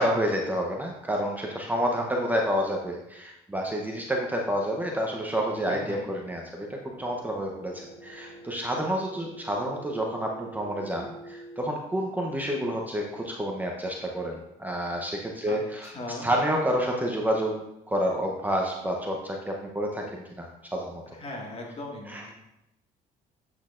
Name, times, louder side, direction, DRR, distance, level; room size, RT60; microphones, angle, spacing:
voice 1, 0.0-14.3 14.6-15.9 16.2-21.0 22.1-22.3, equal, 10° right, 0 dB, 0.8 m, -29 dB
voice 2, 5.6-6.1 15.5-16.3 21.1-22.3, left 2 dB, 35° left, -1 dB, 1.8 m, -39 dB
sound 1, 6.8-11.6, right 1 dB, 30° right, 2.0 m, -46 dB
8.2 x 6.4 x 2.5 m, 0.87 s
cardioid pair, 110°, 17 cm